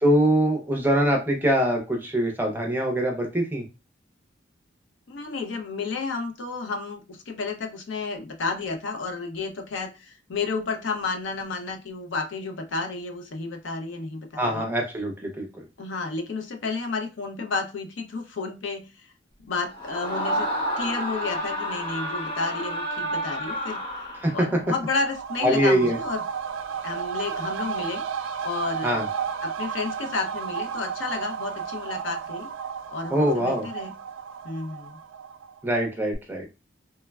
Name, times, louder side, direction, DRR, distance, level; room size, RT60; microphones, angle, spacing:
voice 1, 0.0-3.6 14.4-15.5 24.2-24.3 25.4-26.0 28.8-29.1 33.1-33.7 35.6-36.5, equal, 10° right, 2 dB, 0.5 m, -23 dB
voice 2, 5.1-14.7 15.8-19.1 19.5-20.5 20.8-23.8 24.3-26.2 26.8-28.0 28.4-29.1 29.4-32.5 32.9-33.9 34.4-35.0, left 4 dB, 65° left, 4 dB, 0.5 m, -31 dB
Screaming, 19.7-24.6, equal, 25° left, 0.8 m, -30 dB
sound 1, 24.4-35.8 36.1-36.2, right 7 dB, 75° right, 0.3 m, -33 dB
3.2 x 2.0 x 2.2 m, 0.28 s
head